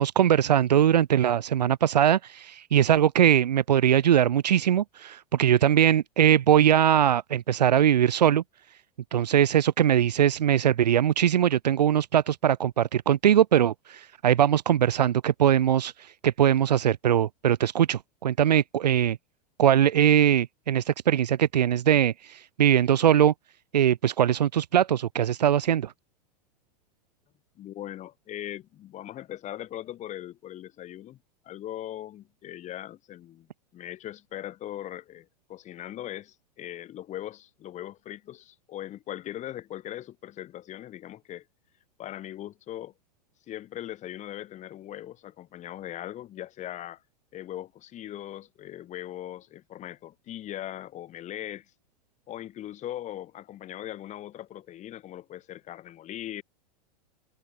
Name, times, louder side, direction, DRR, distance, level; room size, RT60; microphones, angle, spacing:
voice 1, 0.0-8.4 9.1-19.2 19.6-23.3 23.7-25.9, right 10 dB, 90° right, 0.5 m, -21 dB
voice 2, 27.6-31.2 31.4-33.5 33.7-41.4 42.0-42.9 43.5-47.0 47.3-51.7 52.3-56.4, left 12 dB, 35° left, 2.9 m, -39 dB
hypercardioid pair, 100°, 20 cm